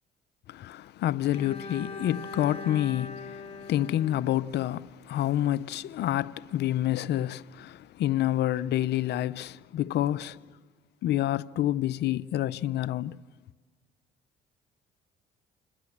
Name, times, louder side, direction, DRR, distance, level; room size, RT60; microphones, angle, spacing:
voice 1, 0.5-10.4 11.0-13.2, left 13 dB, 65° left, 0.6 m, -28 dB
Bowed string instrument, 1.3-5.4, left 3 dB, 35° left, 3.8 m, -42 dB
27.5 x 19.5 x 7.3 m
supercardioid pair, 75°, 19 cm